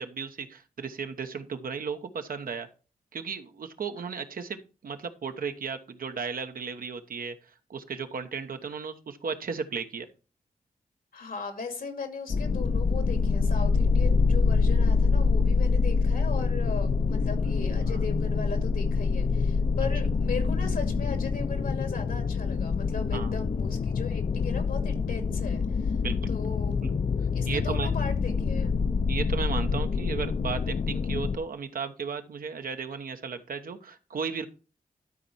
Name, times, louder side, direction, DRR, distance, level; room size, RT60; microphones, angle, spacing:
voice 1, 0.0-2.7 3.1-7.3 7.7-10.1 17.9-18.0 23.1-23.3 26.0-26.2 26.8-27.0 27.5-27.9 29.1-34.4, right 5 dB, 75° right, 1.0 m, -35 dB
voice 2, 11.1-25.9 26.3-26.8 27.3-28.7, left 4 dB, 80° left, 2.3 m, -37 dB
sound 1, 12.3-31.4, left 4 dB, 50° left, 0.6 m, -26 dB
12.5 x 4.5 x 4.2 m
cardioid pair, 60°, 15 cm